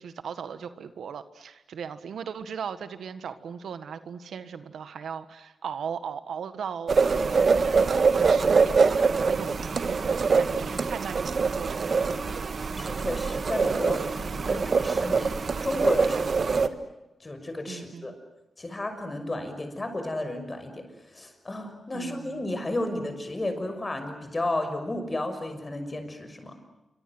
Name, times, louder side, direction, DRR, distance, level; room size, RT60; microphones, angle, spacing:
voice 1, 0.0-12.0 12.3-12.6 16.1-16.2 17.7-18.1 21.9-22.5, right 7 dB, 85° right, 11 dB, 1.6 m, -38 dB
sound 1, 6.9-16.7, right 5 dB, 55° right, 1.5 m, -24 dB
voice 2, 12.7-15.4 15.6-16.8 17.2-18.2 18.6-20.9 21.1-26.6, left 1 dB, 25° left, 7 dB, 6.1 m, -33 dB
28.0 x 25.5 x 7.9 m, 0.99 s
cardioid pair, 85°, 0 cm